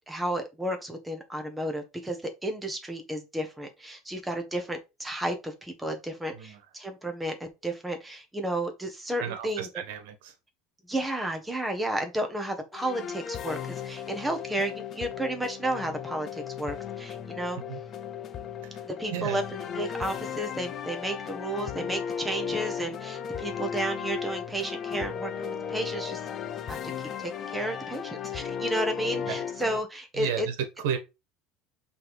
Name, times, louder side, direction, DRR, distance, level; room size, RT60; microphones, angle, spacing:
voice 1, 0.1-9.7 10.9-17.6 18.8-26.2 26.7-26.8 27.2-30.5, right 1 dB, 5° right, 1.3 m, -32 dB
voice 2, 9.2-10.3 17.7-17.8 18.6-18.8 19.1-19.4 29.2-29.4 30.1-31.0, right 9 dB, 85° right, 1.5 m, -33 dB
sound 1, 12.7-29.8, left 8 dB, 30° left, 0.7 m, -36 dB
5.7 x 3.6 x 4.9 m
cardioid pair, 155°, 0 cm